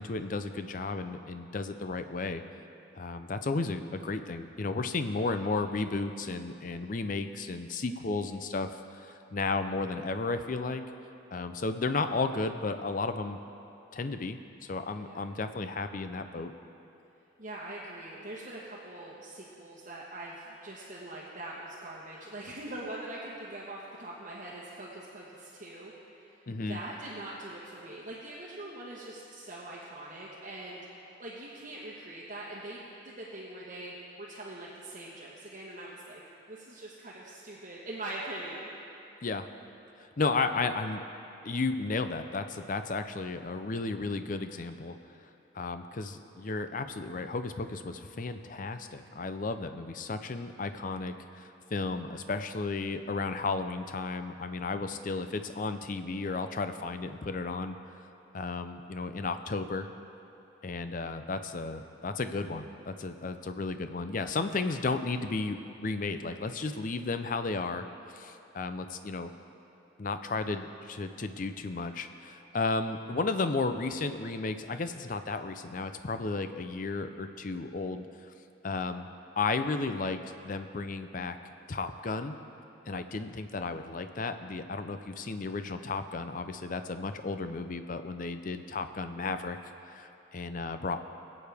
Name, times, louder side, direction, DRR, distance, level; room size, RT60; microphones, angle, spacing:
voice 1, 0.0-2.4 3.0-10.8 11.3-13.4 13.9-16.5 26.5-26.8 39.2-39.5 40.0-41.0 41.4-45.0 45.5-57.8 58.3-59.9 60.6-67.8 68.1-69.3 70.0-78.1 78.6-79.1 79.4-81.4 81.7-82.3 82.8-89.6 89.9-91.0, left 3 dB, 40° left, 9 dB, 0.5 m, -33 dB
voice 2, 17.4-26.4 26.7-30.9 31.2-36.2 36.5-38.7, right 1 dB, 40° right, -6 dB, 1.2 m, -43 dB
21.5 x 8.5 x 3.5 m, 2.8 s
head